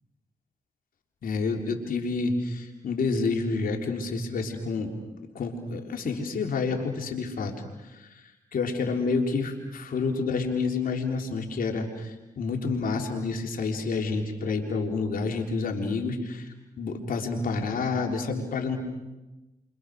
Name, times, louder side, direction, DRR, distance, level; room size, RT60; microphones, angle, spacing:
voice 1, 1.2-4.9 5.3-7.5 7.8-8.1 8.5-16.5 16.8-18.8, left 4 dB, 80° left, 3 dB, 3.8 m, -29 dB
29.0 x 26.5 x 6.5 m, 1.1 s
cardioid pair, 60°, 15 cm